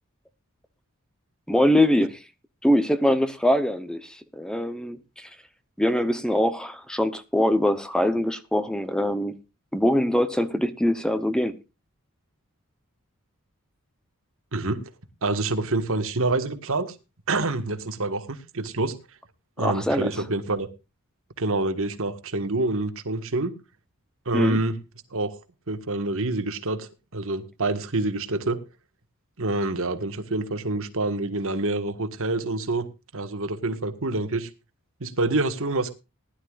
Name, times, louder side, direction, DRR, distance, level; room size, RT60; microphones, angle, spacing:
voice 1, 1.5-2.2 2.6-5.3 5.8-9.4 9.7-11.6 19.6-20.1 24.3-24.6, left 1 dB, 5° left, 0.8 m, -23 dB
voice 2, 15.2-16.9 17.3-19.0 19.6-20.7 21.4-23.5 24.2-24.8 25.1-25.3 25.7-28.6 29.4-32.9 33.1-34.5 35.0-35.9, right 2 dB, 65° right, 1.6 m, -27 dB
19.5 x 11.5 x 2.5 m
head